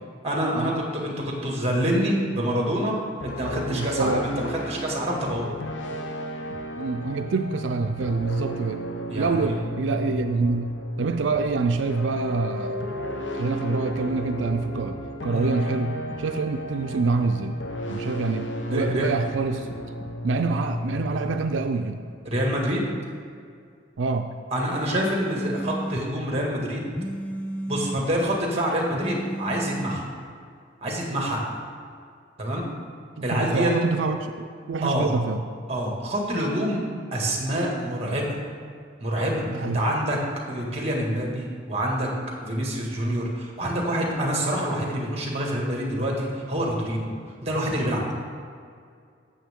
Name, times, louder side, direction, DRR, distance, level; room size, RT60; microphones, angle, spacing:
voice 1, 0.2-3.0 3.2-5.5 9.1-9.5 15.3-15.5 18.7-19.1 22.3-22.8 24.5-26.8 27.7-30.1 30.8-31.4 32.4-32.7 33.2-33.7 34.8-35.2 35.7-36.8 37.1-38.4 39.0-40.2 40.5-42.1 42.4-47.1 47.4-48.1, equal, 35° right, -1 dB, 1.9 m, -26 dB
sound 1, 3.2-22.4, equal, 85° left, 0.8 m, -34 dB
voice 2, 3.7-4.3 6.8-8.8 9.2-10.7 11.0-12.8 13.3-15.0 15.2-17.6 17.9-19.7 20.2-22.1 24.0-24.3 33.3-35.4 39.5-39.8, right 4 dB, 90° right, 6 dB, 0.5 m, -26 dB
sound 2, 24.9-26.0 27.0-28.0 29.0-30.0, equal, 5° left, 0.4 m, -32 dB
13.5 x 7.5 x 3.7 m, 2.2 s
head